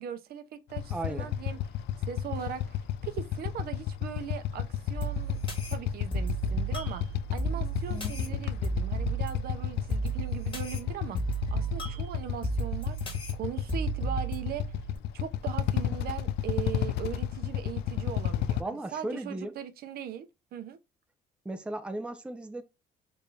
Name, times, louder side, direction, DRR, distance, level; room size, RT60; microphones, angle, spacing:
voice 1, 0.0-1.6 2.1-5.4 5.7-7.0 7.3-14.6 15.1-20.3 20.5-20.8, right 9 dB, 65° right, 0.7 m, -39 dB
Motorcycle / Idling, 0.7-18.6, left 11 dB, 80° left, 0.4 m, -32 dB
voice 2, 0.9-1.3 18.6-19.5 21.4-22.6, right 1 dB, 5° right, 0.5 m, -36 dB
sound 1, 5.0-15.0, right 4 dB, 30° left, 1.8 m, -34 dB
4.6 x 2.7 x 3.2 m
cardioid pair, 110°, 17 cm